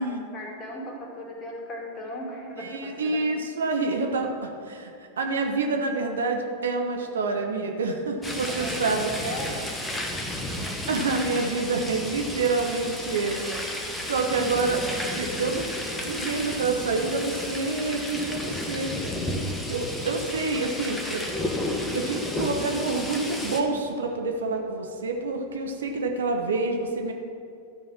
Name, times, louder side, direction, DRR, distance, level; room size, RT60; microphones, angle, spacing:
voice 1, 0.0-3.2 7.0-7.3 8.5-11.0, left 1 dB, 25° left, -1 dB, 2.5 m, -39 dB
voice 2, 2.6-4.9 5.2-9.3 10.5-14.8 15.1-15.7 16.0-19.0 19.7-21.3 21.9-27.1, right 3 dB, 65° right, 3 dB, 1.0 m, -27 dB
sound 1, 8.2-23.6, left 1 dB, 10° left, 1.1 m, -32 dB
13.0 x 5.3 x 5.9 m, 2.4 s
figure-of-eight pair, 90°, 0 cm